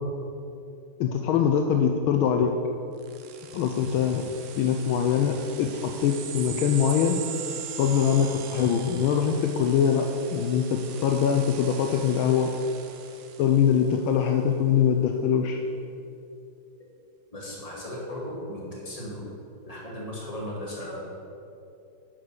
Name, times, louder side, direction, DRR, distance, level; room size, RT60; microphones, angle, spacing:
voice 1, 1.0-2.5 3.5-4.2 4.6-7.2 7.8-10.0 10.3-12.5 13.4-15.6, left 8 dB, 75° left, 4 dB, 1.3 m, -23 dB
sound 1, 3.0-14.1, right 8 dB, 75° right, 1.6 m, -41 dB
voice 2, 17.3-19.2 19.7-21.0, left 1 dB, 15° left, -5 dB, 2.1 m, -36 dB
8.7 x 6.3 x 6.5 m, 2.7 s
omnidirectional pair, 2.4 m